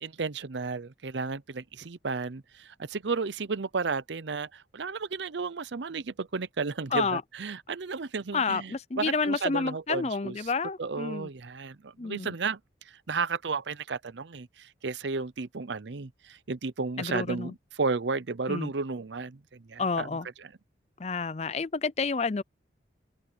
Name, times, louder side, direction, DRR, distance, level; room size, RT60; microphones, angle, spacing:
voice 1, 0.0-10.4 10.8-12.6 12.9-20.1 20.4-20.5, right 4 dB, 75° right, 0.7 m, -33 dB
voice 2, 6.9-7.2 8.3-11.3 12.0-12.3 17.0-17.5 18.5-18.7 19.8-20.3 21.0-22.4, left 4 dB, 35° left, 0.5 m, -29 dB
open air
head